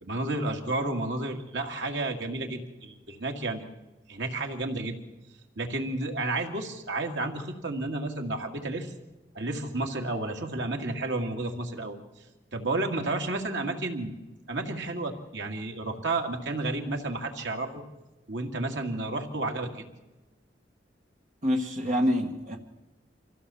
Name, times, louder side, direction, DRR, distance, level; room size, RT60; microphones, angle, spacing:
voice 1, 0.0-3.7 4.1-5.0 5.6-8.9 9.3-12.0 12.5-14.1 14.5-17.8 18.3-19.9, right 2 dB, 75° right, 3 dB, 2.2 m, -31 dB
voice 2, 21.4-22.6, equal, 40° right, 2 dB, 1.7 m, -26 dB
26.0 x 15.5 x 7.0 m, 1.1 s
head